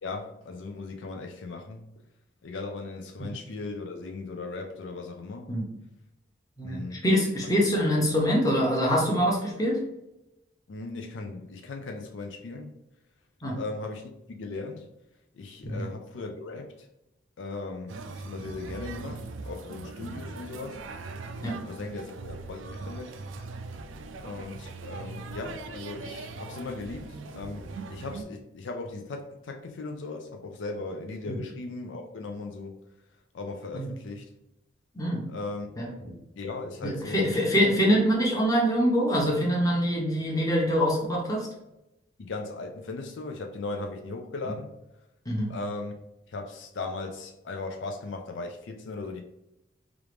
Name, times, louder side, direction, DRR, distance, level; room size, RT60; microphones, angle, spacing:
voice 1, 0.0-1.9 2.4-5.5 6.6-7.0 7.4-7.7 10.7-12.7 13.5-14.9 15.3-16.9 17.4-20.8 21.5-23.2 24.2-32.8 33.3-34.3 35.3-35.7 36.4-37.4 42.2-44.7 45.5-45.9 46.3-49.2, left 3 dB, 75° left, 0.4 m, -38 dB
voice 2, 6.6-9.8 13.4-13.6 15.6-15.8 21.4-21.6 31.3-31.4 33.7-33.9 34.9-35.2 35.8-35.9 36.8-41.5 45.3-45.5, equal, 20° left, 0.9 m, -24 dB
sound 1, 17.9-28.2, right 3 dB, 85° right, 0.4 m, -40 dB
4.6 x 2.5 x 3.4 m
head